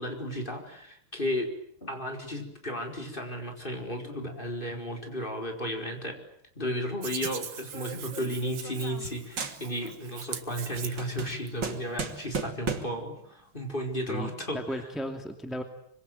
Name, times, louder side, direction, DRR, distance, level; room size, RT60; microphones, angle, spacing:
voice 1, 0.0-1.5 1.8-6.2 6.6-14.9, equal, 25° left, 4 dB, 4.9 m, -34 dB
Hands, 7.0-11.5, right 8 dB, 85° right, 2.6 m, -41 dB
sound 1, 7.7-9.1 9.4-10.0 10.4-13.1, right 5 dB, 55° right, 3.1 m, -36 dB
voice 2, 14.1-15.6, equal, ahead, 5 dB, 2.4 m, -35 dB
25.5 x 25.5 x 9.3 m, 0.69 s
omnidirectional pair, 2.3 m